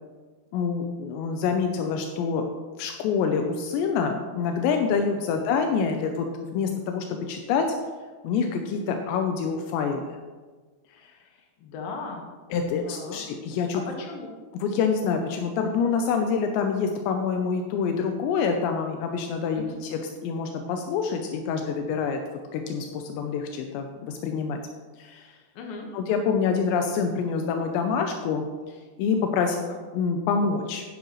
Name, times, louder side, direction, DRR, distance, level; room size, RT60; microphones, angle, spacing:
voice 1, 0.5-2.4 2.8-7.6 8.2-10.2 12.5-13.8 14.5-22.2 22.5-24.6 25.0-25.3 25.9-28.4 29.0-29.7 29.9-30.8, left 5 dB, 90° left, 4 dB, 2.5 m, -26 dB
voice 2, 11.6-12.2 12.8-13.2 14.0-14.3 19.6-19.8 25.6-25.9 29.5-29.8, left 4 dB, 65° left, 1 dB, 2.4 m, -38 dB
11.5 x 10.5 x 3.1 m, 1.4 s
omnidirectional pair, 5.9 m